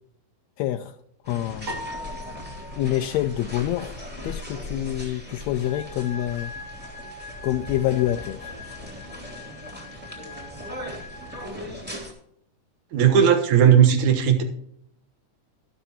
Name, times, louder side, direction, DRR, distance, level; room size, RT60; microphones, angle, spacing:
voice 1, 0.6-1.0 1.3-1.9 2.8-6.5 7.4-8.5, left 13 dB, 80° left, 6 dB, 1.8 m, -27 dB
sound 1, 1.2-12.1, left 1 dB, 5° right, 2.2 m, -39 dB
sound 2, 1.7-4.1, equal, 35° right, 2.9 m, -39 dB
sound 3, 5.6-11.5, left 2 dB, 60° left, 2.1 m, -42 dB
voice 2, 12.9-14.4, right 8 dB, 85° right, 6 dB, 2.7 m, -17 dB
12.5 x 12.5 x 3.0 m, 0.73 s
omnidirectional pair, 3.3 m